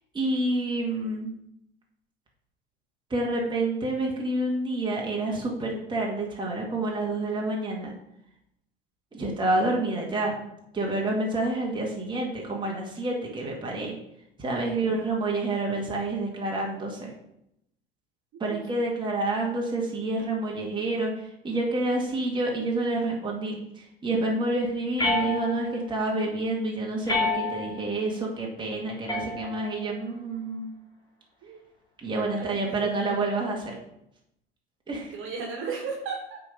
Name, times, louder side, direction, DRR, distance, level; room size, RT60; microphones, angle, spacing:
voice 1, 0.1-1.3 3.1-7.9 9.1-10.3 10.7-13.9 14.4-17.1 18.4-21.1 21.4-23.6 24.0-30.7 32.0-33.7 34.9-35.1, right 2 dB, 15° right, -2 dB, 2.0 m, -28 dB
sound 1, 25.0-25.9 27.1-27.9 29.1-29.9, left 3 dB, 15° left, 2.4 m, -29 dB
voice 2, 32.4-33.3 35.1-36.4, right 4 dB, 40° right, 0 dB, 2.1 m, -36 dB
8.3 x 4.0 x 5.1 m, 0.80 s
figure-of-eight pair, 75°, 31 cm